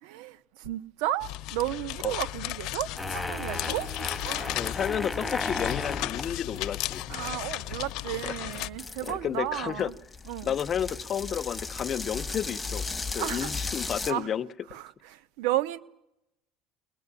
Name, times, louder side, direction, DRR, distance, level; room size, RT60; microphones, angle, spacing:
voice 1, 0.0-3.9 4.2-4.6 7.1-9.9 10.3-10.6 13.2-13.5 14.1-14.3 14.7-15.8, right 14 dB, 80° right, 1.3 m, -33 dB
sound 1, 1.2-8.7, left 17 dB, 60° left, 0.8 m, -35 dB
sound 2, 3.0-14.1, left 3 dB, 10° left, 1.8 m, -36 dB
voice 2, 4.6-7.0 9.0-9.9 10.4-12.9 13.1-14.5, left 9 dB, 35° left, 0.9 m, -31 dB
23.0 x 20.0 x 9.9 m
cardioid pair, 140°, 0 cm